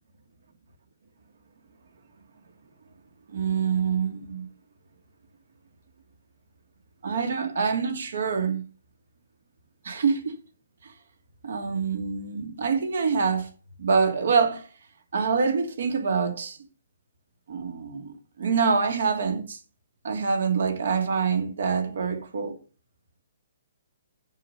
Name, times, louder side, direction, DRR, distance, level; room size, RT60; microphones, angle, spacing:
voice 1, 3.3-4.5 7.0-8.6 9.8-10.4 11.4-13.5 13.8-14.7 15.1-16.6 17.5-19.6 20.0-22.6, right 5 dB, 55° right, 2.6 m, -25 dB
7.5 x 7.3 x 6.7 m
hypercardioid pair, 175°, 0 cm